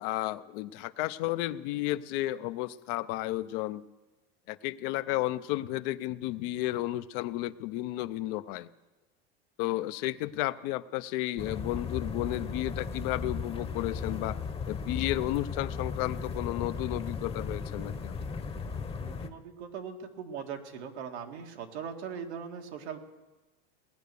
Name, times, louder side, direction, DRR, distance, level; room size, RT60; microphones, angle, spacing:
voice 1, 0.0-3.8 4.5-8.7 9.6-14.4 14.7-18.2, left 16 dB, 60° left, 14 dB, 0.7 m, -33 dB
sound 1, 11.4-19.3, left 5 dB, 20° left, 0.9 m, -36 dB
voice 2, 18.7-23.0, right 7 dB, 85° right, 4 dB, 1.9 m, -40 dB
18.5 x 9.3 x 6.9 m, 1.2 s
supercardioid pair, 125°, 32 cm